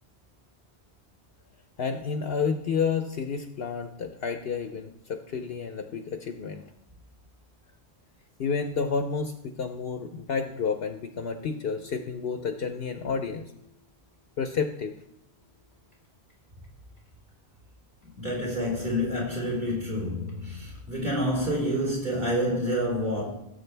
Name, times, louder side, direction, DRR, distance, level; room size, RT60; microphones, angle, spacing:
voice 1, 1.8-6.6 8.4-13.5 14.4-14.9, left 5 dB, 65° left, 6 dB, 1.0 m, -30 dB
voice 2, 18.0-23.2, equal, 45° right, -2 dB, 3.8 m, -28 dB
16.0 x 7.8 x 3.4 m, 0.80 s
omnidirectional pair, 1.1 m